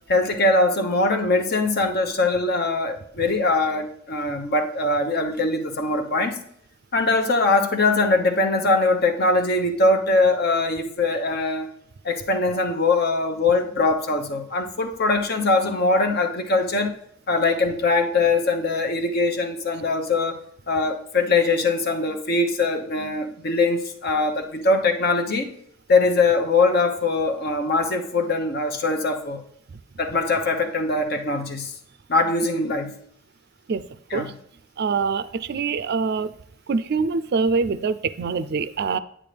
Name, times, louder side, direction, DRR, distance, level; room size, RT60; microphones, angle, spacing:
voice 1, 0.1-6.4 6.9-11.7 12.0-16.9 17.3-20.4 20.7-25.5 25.9-29.4 30.0-31.7 32.1-32.9 34.1-34.3, left 3 dB, 55° left, 4 dB, 1.0 m, -22 dB
voice 2, 34.8-36.3 36.7-39.0, right 5 dB, 55° right, 13 dB, 0.4 m, -24 dB
8.8 x 8.8 x 3.4 m, 0.67 s
head